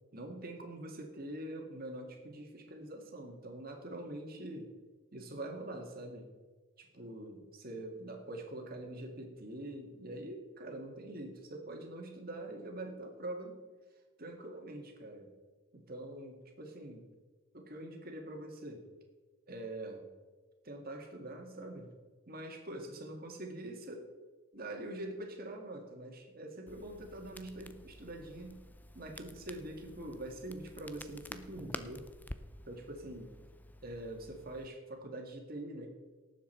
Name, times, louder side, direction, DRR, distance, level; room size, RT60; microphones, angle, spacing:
voice 1, 0.1-4.7 5.1-6.3 6.8-13.6 14.2-15.3 15.7-17.1 17.5-18.8 19.5-20.1 20.6-21.9 22.3-24.1 24.5-28.6 28.9-32.1 32.7-33.3 33.8-35.9, right 1 dB, 45° right, 3 dB, 2.0 m, -44 dB
Crackle, 26.7-34.7, left 1 dB, 10° left, 0.4 m, -50 dB
18.0 x 7.4 x 4.5 m, 1.3 s
head